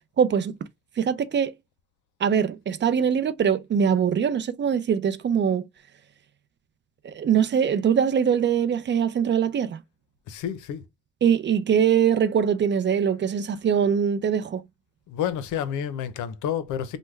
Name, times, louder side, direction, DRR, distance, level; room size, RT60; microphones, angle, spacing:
voice 1, 0.2-0.6 1.0-1.5 2.2-5.6 7.0-9.8 11.2-14.6, right 7 dB, 40° right, 0.4 m, -22 dB
voice 2, 10.3-10.8 15.1-17.0, left 9 dB, 85° left, 0.6 m, -29 dB
3.3 x 2.1 x 3.1 m
cardioid pair, 90°, 30 cm